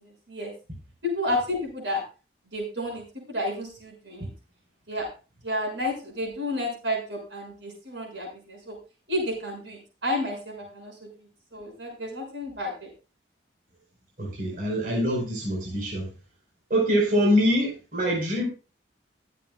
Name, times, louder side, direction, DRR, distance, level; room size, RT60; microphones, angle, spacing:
voice 1, 1.0-2.0 2.5-4.3 4.9-5.0 5.4-8.8 9.1-10.9 11.5-12.9, left 1 dB, 75° right, 1 dB, 6.6 m, -31 dB
voice 2, 14.2-16.1 16.7-18.4, equal, 45° right, -2 dB, 5.1 m, -24 dB
23.0 x 8.0 x 2.4 m, 0.33 s
head